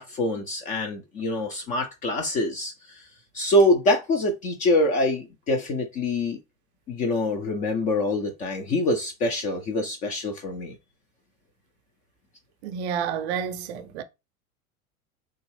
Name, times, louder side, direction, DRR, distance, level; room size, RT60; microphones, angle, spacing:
voice 1, 0.0-3.0 3.3-6.4 6.9-10.8, left 1 dB, 20° left, 0.3 m, -25 dB
voice 2, 12.6-14.0, right 7 dB, 50° right, 0.6 m, -30 dB
3.5 x 2.5 x 3.1 m
figure-of-eight pair, 85°, 42 cm